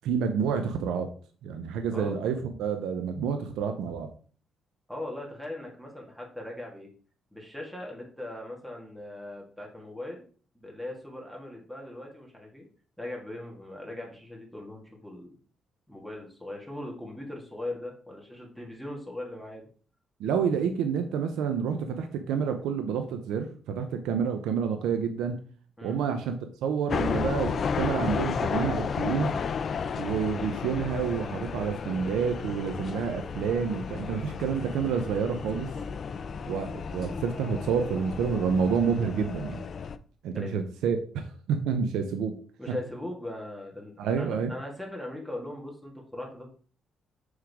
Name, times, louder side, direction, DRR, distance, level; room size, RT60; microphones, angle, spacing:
voice 1, 0.0-1.1 1.4-4.1 20.2-25.4 25.8-26.3 26.6-29.3 30.0-35.7 36.5-39.6 40.2-42.3 42.7-42.8 44.0-44.5, right 6 dB, 85° right, 7 dB, 0.7 m, -29 dB
voice 2, 4.9-6.9 7.3-10.2 10.6-12.7 13.0-15.4 15.9-19.7 25.8-26.0 40.3-40.6 42.6-46.5, left 1 dB, ahead, -1 dB, 2.0 m, -39 dB
sound 1, 26.9-40.0, left 6 dB, 50° left, 0.5 m, -33 dB
6.3 x 3.7 x 4.8 m, 0.42 s
cardioid pair, 90°, 0 cm